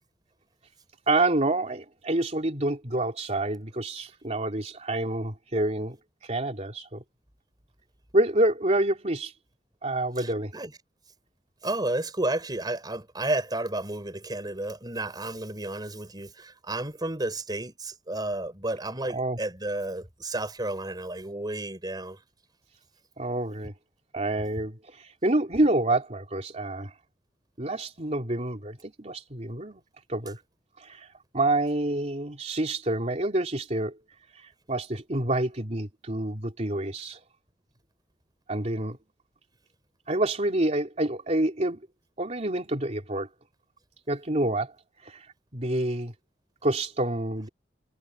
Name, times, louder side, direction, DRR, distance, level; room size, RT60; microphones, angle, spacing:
voice 1, 1.1-6.0 6.2-7.0 8.1-9.3 9.8-10.5 19.1-19.4 23.2-23.7 24.1-26.9 27.6-29.8 30.1-30.4 30.8-31.1 31.3-33.9 34.7-37.2 38.5-39.0 40.1-41.8 42.2-43.3 44.1-44.7 45.0-45.3 45.5-46.1 46.6-47.5, right 2 dB, 40° right, 3.5 m, -27 dB
voice 2, 10.2-10.7 11.6-22.2, right 2 dB, 25° right, 4.4 m, -32 dB
head